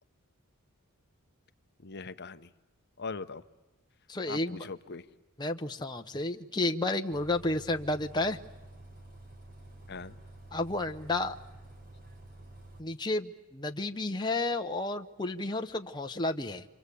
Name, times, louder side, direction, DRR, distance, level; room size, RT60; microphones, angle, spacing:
voice 1, 1.8-2.5 3.0-3.4 4.2-5.1 9.9-10.2, left 4 dB, 50° left, 11 dB, 0.9 m, -40 dB
voice 2, 4.1-4.7 5.4-8.4 10.5-11.4 12.8-16.7, left 2 dB, 20° left, 5 dB, 0.8 m, -31 dB
Bus, 7.1-12.8, right 1 dB, 40° right, 3.5 m, -50 dB
28.0 x 25.0 x 8.4 m, 1.1 s
head